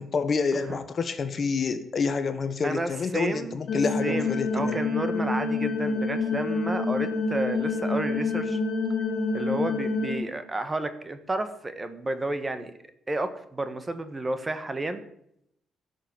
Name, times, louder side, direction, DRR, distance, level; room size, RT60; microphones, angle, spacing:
voice 1, 0.0-4.8, left 5 dB, 45° left, 10 dB, 1.3 m, -28 dB
voice 2, 2.6-3.5 4.0-8.6 9.3-12.7 13.1-15.0, right 2 dB, 20° right, 10 dB, 1.4 m, -31 dB
sound 1, 3.7-10.1, left 3 dB, 65° left, 3.1 m, -27 dB
11.5 x 6.8 x 9.6 m, 0.75 s
cardioid pair, 90°, 0 cm